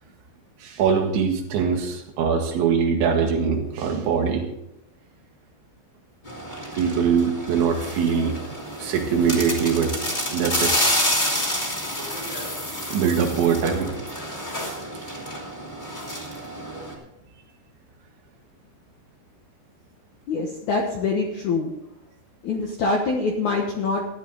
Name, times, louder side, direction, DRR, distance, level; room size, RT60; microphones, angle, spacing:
voice 1, 0.6-4.5 6.7-8.4 8.8-10.0 10.3-11.1 12.9-13.9, right 6 dB, 80° right, 2 dB, 4.2 m, -22 dB
sound 1, 6.3-16.9, equal, 15° left, 2.1 m, -29 dB
voice 2, 20.3-21.7 22.4-24.0, left 3 dB, 70° left, 1 dB, 1.8 m, -24 dB
15.0 x 11.5 x 3.9 m, 0.84 s
omnidirectional pair, 5.2 m